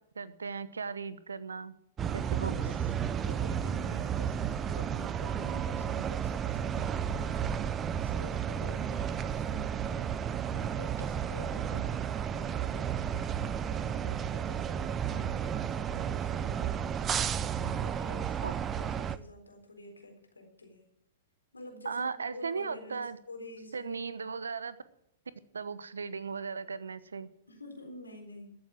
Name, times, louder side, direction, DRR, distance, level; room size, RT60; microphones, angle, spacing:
voice 1, 0.1-1.7 2.1-2.5 11.7-11.8 18.4-18.5 21.8-23.2 23.7-24.8 25.5-27.3, right 5 dB, 80° right, 15 dB, 1.0 m, -37 dB
sound 1, 2.0-19.2, right 8 dB, 25° right, 0.7 m, -32 dB
voice 2, 2.1-2.8 3.2-10.1 10.5-13.0 13.6-16.9 17.6-18.4 18.7-20.9 21.5-24.1 27.5-28.5, left 1 dB, 90° left, 3 dB, 4.0 m, -48 dB
14.0 x 7.2 x 9.1 m, 0.78 s
figure-of-eight pair, 110°, 0 cm